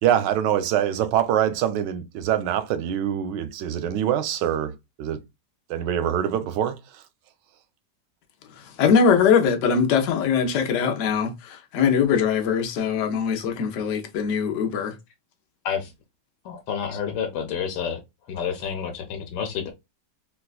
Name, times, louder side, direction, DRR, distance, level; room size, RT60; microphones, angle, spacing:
voice 1, 0.0-4.7 5.0-5.2 5.7-7.0, right 10 dB, 85° right, 1.2 m, -24 dB
voice 2, 8.6-14.9, left 6 dB, 60° left, 0.9 m, -22 dB
voice 3, 16.4-18.0 18.3-19.7, left 7 dB, 80° left, 1.3 m, -29 dB
3.9 x 2.3 x 2.3 m
omnidirectional pair, 1.8 m